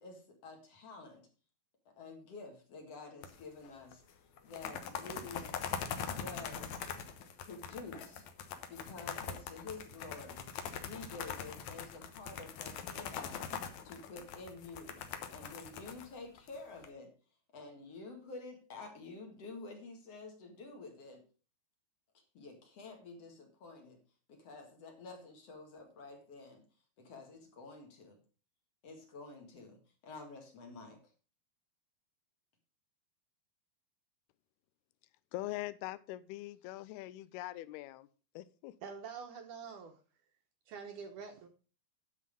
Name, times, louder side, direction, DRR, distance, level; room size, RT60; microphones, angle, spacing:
voice 1, 0.0-1.3 1.9-4.0 4.4-5.6 6.1-6.8 7.4-8.2 8.7-10.5 10.8-15.0 15.3-17.1 17.5-21.2 22.3-24.0 24.3-26.6 27.0-28.2 28.8-29.8 30.0-31.0, left 3 dB, 45° left, 2.5 m, -49 dB
sound 1, 3.2-3.7 3.9-4.0 4.4-16.9, left 7 dB, 65° left, 1.9 m, -42 dB
voice 2, 35.3-38.1 38.4-38.8, left 16 dB, 90° left, 2.6 m, -42 dB
voice 3, 38.8-40.0 40.7-41.5, right 6 dB, 70° right, 2.1 m, -46 dB
9.9 x 6.4 x 5.2 m
omnidirectional pair, 4.4 m